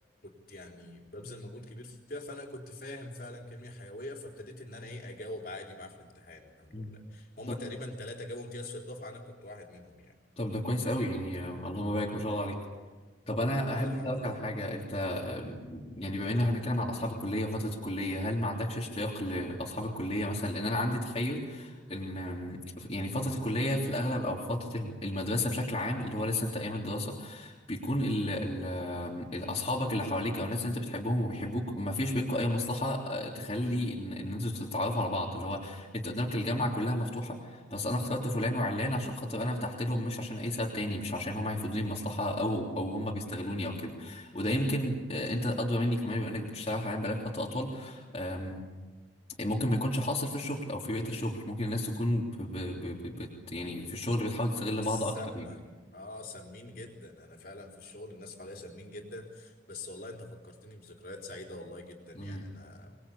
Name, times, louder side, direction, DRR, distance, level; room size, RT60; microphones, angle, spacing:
voice 1, 0.2-10.2 13.7-14.4 54.8-55.6 55.9-63.0, left 2 dB, 50° left, 2 dB, 4.0 m, -44 dB
voice 2, 10.4-12.6 13.3-48.6 49.4-55.4 62.1-62.4, left 1 dB, 30° left, -3 dB, 3.2 m, -32 dB
25.5 x 21.0 x 8.5 m, 1.3 s
head